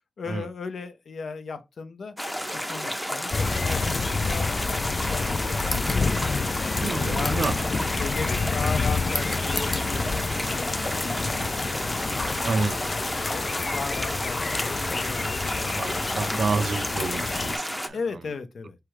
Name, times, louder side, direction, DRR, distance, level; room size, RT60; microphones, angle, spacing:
voice 1, 0.2-2.2 2.5-6.0 7.0-7.4 7.8-10.7 11.0-12.2 12.7-16.0 17.9-18.8, left 5 dB, 80° left, 0.7 m, -37 dB
sound 1, 2.2-17.9, equal, 5° left, 0.6 m, -32 dB
sound 2, 3.3-17.6, left 4 dB, 45° left, 0.3 m, -28 dB
sound 3, 5.6-6.1 7.1-7.6 9.1-9.9, left 1 dB, 25° left, 1.1 m, -34 dB
voice 2, 6.8-7.5 12.4-12.8 15.8-18.0, right 4 dB, 90° right, 0.5 m, -28 dB
4.7 x 3.3 x 3.1 m
wide cardioid pair, 155°, 0 cm